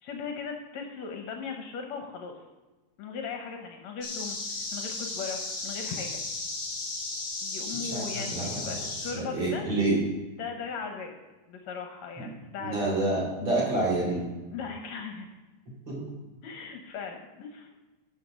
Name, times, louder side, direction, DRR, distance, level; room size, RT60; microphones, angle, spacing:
voice 1, 0.0-2.3 3.0-6.2 7.4-9.7 10.4-11.1 11.5-12.9 14.5-15.3 16.4-17.7, left 5 dB, 70° left, 3 dB, 2.0 m, -38 dB
sound 1, 4.0-9.1, left 3 dB, 40° left, 2.8 m, -35 dB
voice 2, 7.8-8.9 9.1-10.0 12.2-12.3 12.6-14.2 15.9-16.0, right 2 dB, 40° right, -4 dB, 3.8 m, -28 dB
12.0 x 6.3 x 5.0 m, 1.2 s
omnidirectional pair, 3.5 m